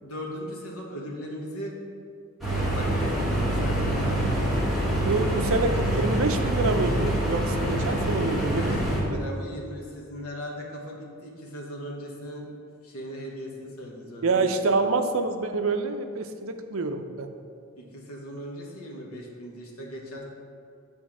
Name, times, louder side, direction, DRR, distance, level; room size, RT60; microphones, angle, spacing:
voice 1, 0.0-1.7 2.7-4.2 8.1-12.5 12.8-14.7 17.8-20.2, equal, 80° left, -1 dB, 1.3 m, -38 dB
sound 1, 2.4-9.0, right 1 dB, ahead, 1.8 m, -25 dB
voice 2, 5.0-8.8 14.2-17.3, right 3 dB, 65° right, 7 dB, 0.5 m, -27 dB
8.6 x 3.5 x 6.0 m, 2.3 s
head